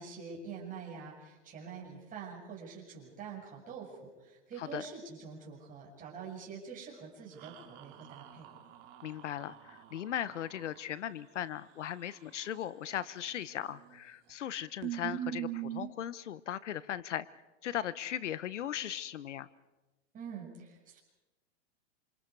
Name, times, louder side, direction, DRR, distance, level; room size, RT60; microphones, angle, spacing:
voice 1, 0.0-8.5 20.1-21.0, right 6 dB, 25° right, -2 dB, 7.5 m, -46 dB
sound 1, 7.4-10.8 13.5-14.0 14.3-14.4 14.8-15.9, right 12 dB, 45° right, 3.5 m, -42 dB
voice 2, 9.0-17.3 17.6-19.5, left 10 dB, 90° left, 17 dB, 1.2 m, -38 dB
27.5 x 27.0 x 4.9 m, 1.1 s
hypercardioid pair, 135°, 35 cm